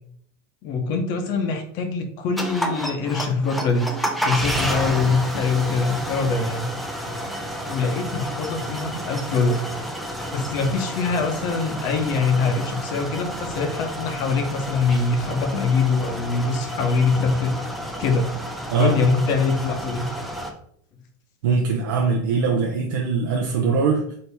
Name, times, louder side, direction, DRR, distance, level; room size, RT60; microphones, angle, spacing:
voice 1, 0.6-3.9 4.2-6.7 7.7-9.6 10.3-17.6 18.0-18.2 18.8-20.1, left 4 dB, 40° left, 5 dB, 0.7 m, -23 dB
sound 1, 2.4-20.5, equal, ahead, 0.4 m, -30 dB
voice 2, 21.4-24.1, right 4 dB, 85° right, 0 dB, 0.6 m, -21 dB
4.4 x 2.7 x 3.4 m, 0.65 s
supercardioid pair, 170°, 10 cm